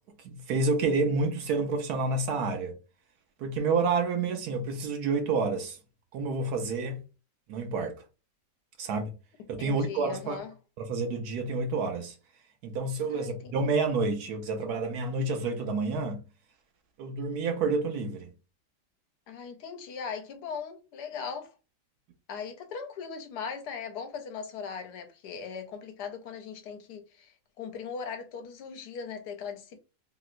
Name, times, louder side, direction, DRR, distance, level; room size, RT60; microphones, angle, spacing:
voice 1, 0.2-2.8 3.4-5.8 6.1-7.0 7.5-8.0 8.8-9.1 9.5-10.4 10.8-12.2 12.6-16.2 17.0-18.3, right 3 dB, 70° right, 1.0 m, -29 dB
voice 2, 9.6-10.5 13.1-13.5 19.3-21.5 22.3-29.8, left 6 dB, 75° left, 1.1 m, -39 dB
3.0 x 2.8 x 2.4 m
omnidirectional pair, 1.9 m